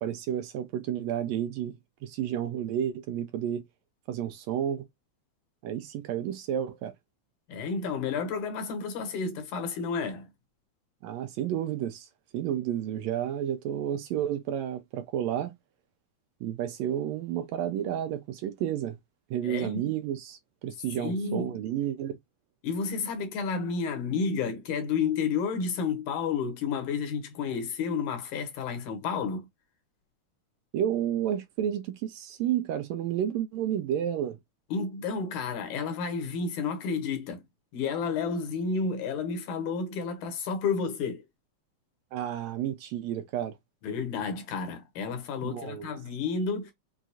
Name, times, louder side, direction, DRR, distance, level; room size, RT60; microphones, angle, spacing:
voice 1, 0.0-3.6 4.1-4.9 5.6-6.9 11.0-12.1 12.3-15.5 16.4-19.0 19.3-22.2 30.7-34.4 42.1-43.6 45.4-45.9, right 10 dB, 80° right, 1.6 m, -31 dB
voice 2, 7.5-10.3 19.4-19.9 21.0-21.6 22.6-29.5 34.7-37.4 37.7-41.2 43.8-46.7, left 5 dB, 80° left, 2.5 m, -31 dB
6.1 x 2.3 x 2.6 m
omnidirectional pair, 3.4 m